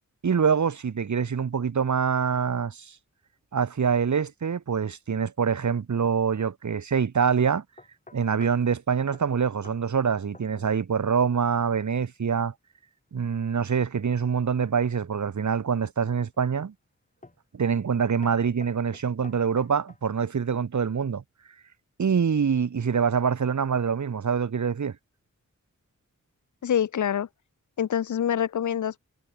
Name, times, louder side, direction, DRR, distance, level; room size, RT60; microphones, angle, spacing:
voice 1, 0.2-3.0 3.5-7.6 8.1-12.5 13.1-16.7 17.5-21.2 22.0-25.0, right 6 dB, 75° right, 2.3 m, -25 dB
sound 1, 7.8-8.7 9.1-9.3 9.6-9.8 10.1-10.8 11.0-11.4 14.8-15.4 16.0-16.4 17.2-17.5 17.8-18.0 18.2-20.1, left 2 dB, 25° left, 5.1 m, -51 dB
voice 2, 26.6-27.3 27.8-29.0, left 9 dB, 85° left, 0.7 m, -25 dB
wide cardioid pair, 125°, 29 cm